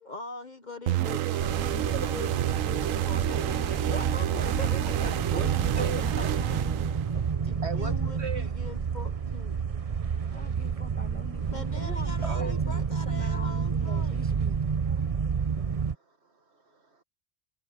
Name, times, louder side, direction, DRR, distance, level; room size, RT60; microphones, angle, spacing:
voice 1, 0.0-3.6 4.6-5.1 7.3-9.6 11.5-14.2, left 2 dB, 35° left, 1.2 m, -42 dB
sound 1, 0.9-7.3, right 13 dB, 90° right, 1.1 m, -29 dB
sound 2, 1.4-15.9, right 6 dB, 35° right, 0.7 m, -29 dB
voice 2, 3.1-7.7 10.3-14.6, equal, 5° left, 1.7 m, -43 dB
voice 3, 5.3-6.1 7.6-8.5 10.1-10.5 11.4-12.7 14.8-14.9 15.7-17.0, right 4 dB, 55° right, 1.9 m, -39 dB
omnidirectional pair, 1.3 m